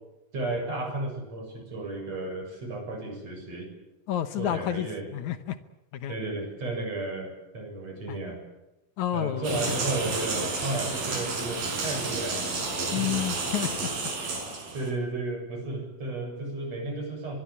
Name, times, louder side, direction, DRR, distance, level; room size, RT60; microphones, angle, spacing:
voice 1, 0.3-3.7 4.4-5.1 6.1-8.4 9.1-13.1 14.7-17.4, right 2 dB, 40° right, 3 dB, 8.3 m, -33 dB
voice 2, 4.1-5.6 5.9-6.2 8.1-8.2 9.0-9.8 10.1-10.2 12.9-13.9 14.2-14.4, left 12 dB, 70° left, 11 dB, 1.9 m, -30 dB
sound 1, 9.4-14.9, right 3 dB, 65° right, 7.0 m, -31 dB
24.0 x 22.0 x 8.5 m, 0.94 s
omnidirectional pair, 4.5 m